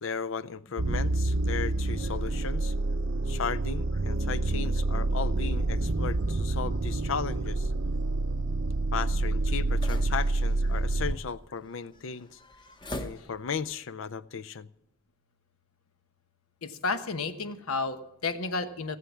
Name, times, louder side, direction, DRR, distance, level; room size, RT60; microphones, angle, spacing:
voice 1, 0.0-2.7 3.3-7.7 8.9-12.4 13.0-14.7, left 6 dB, 65° left, 0.5 m, -35 dB
sound 1, 0.8-11.2, right 2 dB, 55° right, 0.6 m, -28 dB
sound 2, 6.0-13.7, left 1 dB, 20° left, 0.9 m, -47 dB
voice 2, 16.6-19.0, left 3 dB, 85° left, 1.1 m, -32 dB
18.0 x 7.8 x 7.2 m
head